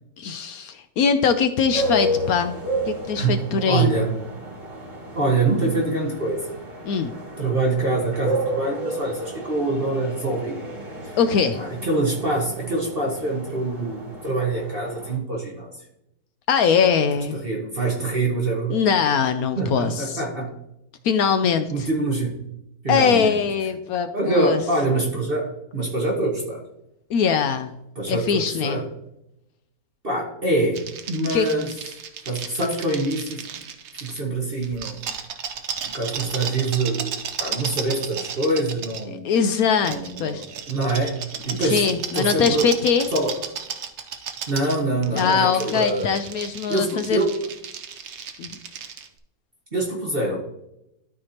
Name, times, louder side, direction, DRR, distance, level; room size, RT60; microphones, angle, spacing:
voice 1, 0.2-2.5 2.9-3.9 6.9-7.1 11.2-11.6 16.5-17.4 18.7-20.2 21.0-21.9 22.9-24.6 27.1-27.7 28.1-28.8 31.3-31.5 39.2-40.4 41.5-43.1 45.1-47.2 48.4-48.6, left 6 dB, 75° left, 9 dB, 0.8 m, -22 dB
sound 1, 1.7-15.2, right 1 dB, 15° right, 2.4 m, -32 dB
voice 2, 3.2-4.1 5.1-6.4 7.4-10.6 11.0-11.2 11.5-15.8 17.3-18.8 19.6-20.5 21.7-22.4 22.8-23.4 24.1-26.6 27.9-28.9 30.0-32.0 32.2-33.4 34.0-35.0 35.8-39.3 39.9-41.2 41.4-42.7 43.1-43.3 44.5-46.1 46.7-47.3 49.7-50.4, right 2 dB, 35° right, -1 dB, 1.4 m, -25 dB
sound 2, 30.7-34.2 34.6-39.0 39.8-49.1, right 7 dB, 65° right, 0.7 m, -34 dB
12.5 x 4.7 x 2.9 m, 0.82 s
omnidirectional pair, 2.0 m